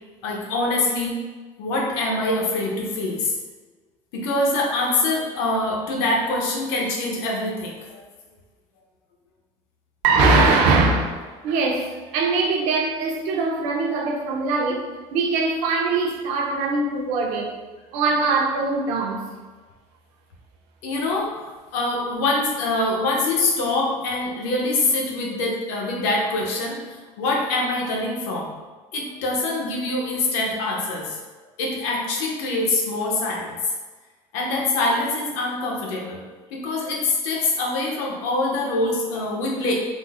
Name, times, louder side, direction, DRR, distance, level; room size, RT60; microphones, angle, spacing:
voice 1, 0.2-1.2 1.6-3.3 4.1-8.0 20.8-21.3 21.7-26.8 27.2-28.5 28.9-31.2 31.6-33.7 34.3-36.2 36.5-39.7, left 2 dB, 70° left, -1 dB, 0.8 m, -24 dB
voice 2, 10.0-11.2 11.4-17.6 17.9-19.3, right 3 dB, 65° right, 1 dB, 0.6 m, -21 dB
3.7 x 2.1 x 3.5 m, 1.3 s
cardioid pair, 180°, 13 cm